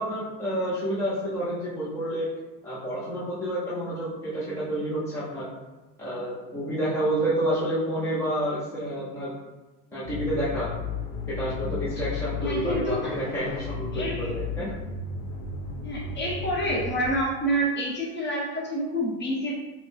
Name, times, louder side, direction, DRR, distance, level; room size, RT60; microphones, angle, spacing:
voice 1, 0.0-2.3 2.6-5.5 6.0-9.3 9.9-10.7 11.3-14.0 14.3-14.8, right 1 dB, 5° left, -9 dB, 0.3 m, -29 dB
sound 1, 10.0-17.1, left 4 dB, 60° left, 0.8 m, -34 dB
voice 2, 12.4-13.1 13.9-14.3 15.8-19.5, right 1 dB, 25° left, -4 dB, 1.0 m, -28 dB
5.0 x 2.0 x 3.1 m, 1.1 s
supercardioid pair, 145°, 43 cm